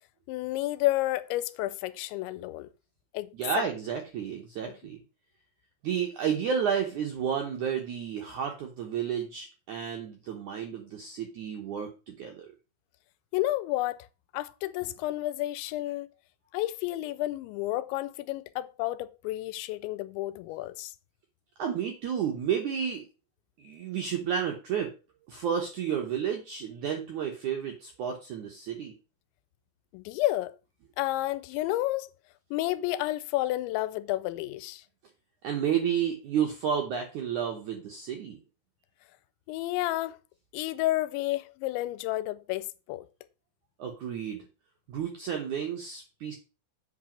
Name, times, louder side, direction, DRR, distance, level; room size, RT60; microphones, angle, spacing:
voice 1, 0.3-2.7 3.1-3.7 13.3-14.1 14.3-16.1 16.5-20.9 29.9-30.6 31.0-32.1 32.5-34.8 39.5-40.2 40.5-43.1, left 16 dB, 85° left, 2.9 m, -31 dB
voice 2, 3.3-5.0 5.8-12.5 21.6-23.1 23.6-24.9 25.3-28.9 35.4-38.4 43.8-44.4 44.9-46.3, right 8 dB, 75° right, 1.8 m, -31 dB
8.0 x 4.9 x 7.2 m
omnidirectional pair, 5.2 m